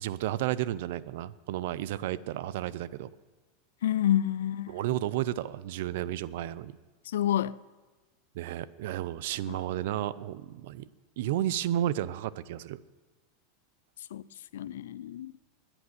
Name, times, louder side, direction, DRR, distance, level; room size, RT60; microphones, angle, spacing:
voice 1, 0.0-3.1 4.7-6.8 8.3-10.9 11.2-12.8, right 13 dB, 70° right, 0.5 m, -32 dB
voice 2, 3.8-4.8 7.1-7.6 9.5-9.6 14.1-14.2 14.5-15.3, left 11 dB, 85° left, 0.4 m, -28 dB
10.5 x 8.9 x 9.7 m
hypercardioid pair, 115°, 0 cm